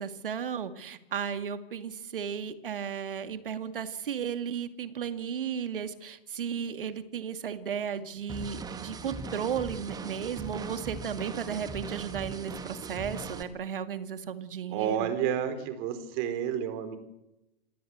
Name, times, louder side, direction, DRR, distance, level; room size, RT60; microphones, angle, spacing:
voice 1, 0.0-15.1, right 7 dB, 65° right, 10 dB, 2.4 m, -34 dB
sound 1, 8.3-13.4, right 4 dB, 15° right, 2.1 m, -39 dB
voice 2, 14.7-17.0, right 9 dB, 35° right, 10 dB, 4.7 m, -30 dB
28.0 x 18.5 x 8.2 m, 0.91 s
figure-of-eight pair, 120°, 29 cm